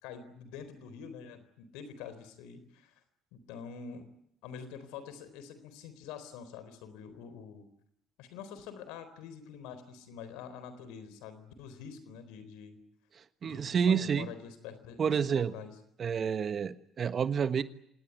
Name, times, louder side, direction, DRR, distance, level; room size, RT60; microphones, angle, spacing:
voice 1, 0.0-2.9 3.3-4.1 4.4-7.7 8.2-12.8 13.4-15.7, left 7 dB, 75° left, 11 dB, 4.0 m, -46 dB
voice 2, 13.2-14.3 15.0-15.5 16.0-17.6, right 7 dB, 45° right, 12 dB, 1.4 m, -29 dB
26.5 x 19.0 x 9.3 m, 0.76 s
hypercardioid pair, 60°, 0 cm